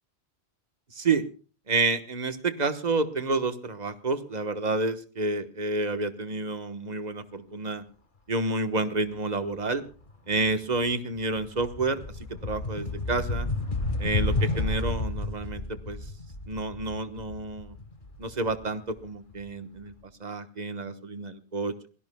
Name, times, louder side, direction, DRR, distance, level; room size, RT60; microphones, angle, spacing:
voice 1, 0.9-1.2 1.7-7.8 8.3-9.8 10.3-12.0 12.4-13.5 14.0-16.0 16.5-17.7 18.2-19.9 20.2-21.9, right 3 dB, 40° right, 9 dB, 1.3 m, -29 dB
sound 1, 9.9-10.1 10.4-19.3, left 2 dB, 50° left, 1.7 m, -32 dB
27.0 x 17.5 x 2.3 m, 0.37 s
omnidirectional pair, 1.1 m